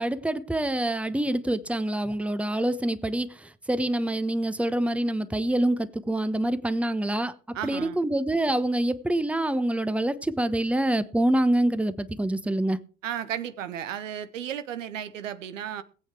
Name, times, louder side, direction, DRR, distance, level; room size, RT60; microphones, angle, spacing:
voice 1, 0.0-7.3 7.6-12.8, right 1 dB, 5° right, 1.0 m, -26 dB
voice 2, 7.5-8.0 13.0-15.8, right 9 dB, 80° right, 0.9 m, -34 dB
19.0 x 8.5 x 4.8 m
figure-of-eight pair, 55°, 38 cm